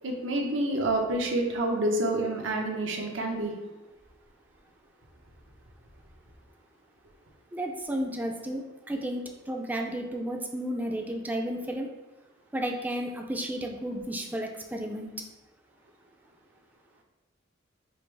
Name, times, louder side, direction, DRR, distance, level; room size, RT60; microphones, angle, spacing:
voice 1, 0.0-3.5, right 1 dB, 80° right, 1 dB, 0.8 m, -28 dB
voice 2, 7.5-11.9 12.5-15.1, right 1 dB, 10° right, 2 dB, 0.4 m, -33 dB
5.0 x 2.0 x 4.6 m, 1.1 s
head